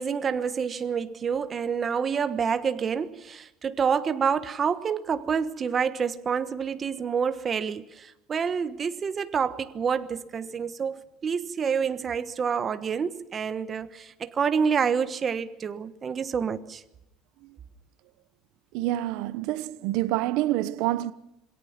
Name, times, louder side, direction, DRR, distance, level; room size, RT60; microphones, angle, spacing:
voice 1, 0.0-16.8, right 6 dB, 25° right, 1.2 m, -28 dB
voice 2, 18.7-21.1, right 15 dB, 75° right, 1.0 m, -27 dB
27.5 x 22.0 x 5.9 m
cardioid pair, 150°, 0 cm